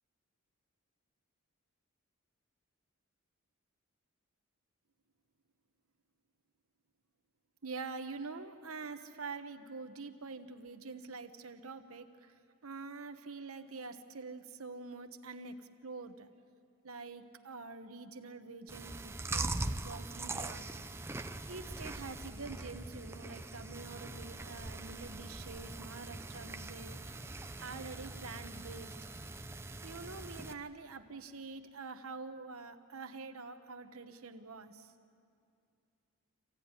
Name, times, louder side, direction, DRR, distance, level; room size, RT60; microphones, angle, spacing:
voice 1, 7.6-12.3 12.6-16.3 16.8-20.7 21.5-27.2 27.6-29.0 29.8-34.9, right 4 dB, 80° right, 7 dB, 1.2 m, -46 dB
Chewing mastication, 18.7-30.5, right 2 dB, 10° right, 0.5 m, -42 dB
25.5 x 16.0 x 9.6 m, 2.4 s
head